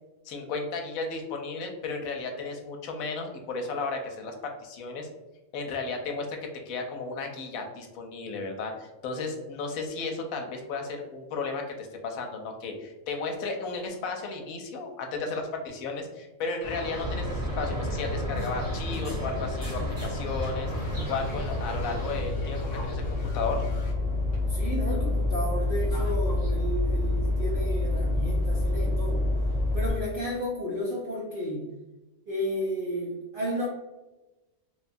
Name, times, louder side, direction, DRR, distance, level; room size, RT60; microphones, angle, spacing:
voice 1, 0.2-5.1 5.5-6.4 6.7-20.7 21.1-23.0 23.3-23.6, left 4 dB, 85° left, 3 dB, 1.0 m, -34 dB
sound 1, 16.6-22.2, equal, 30° right, 0.9 m, -36 dB
sound 2, 17.0-29.9, left 2 dB, 35° left, 0.9 m, -28 dB
sound 3, 20.7-23.9, equal, 60° left, 0.8 m, -44 dB
voice 2, 24.5-29.3 29.7-31.7 32.3-33.7, equal, 70° right, -3 dB, 0.5 m, -32 dB
2.8 x 2.3 x 2.5 m, 1.1 s
omnidirectional pair, 1.4 m